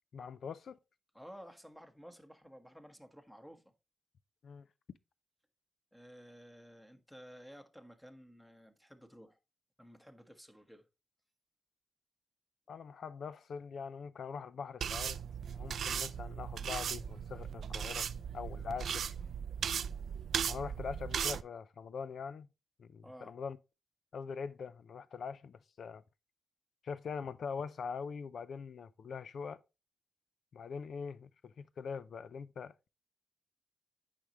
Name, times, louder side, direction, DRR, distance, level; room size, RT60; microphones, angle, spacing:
voice 1, 0.1-0.8 4.4-4.7 12.7-15.2 15.5-18.1 18.3-19.2 20.5-22.5 22.8-23.6 24.1-26.0 26.8-29.6 30.5-32.9, left 6 dB, 75° left, 0.5 m, -43 dB
voice 2, 1.1-3.7 5.9-9.4 9.8-10.9 23.0-23.4, equal, 5° left, 1.3 m, -54 dB
sound 1, 14.8-21.4, right 8 dB, 80° right, 0.3 m, -37 dB
8.5 x 5.2 x 3.0 m
cardioid pair, 50°, 0 cm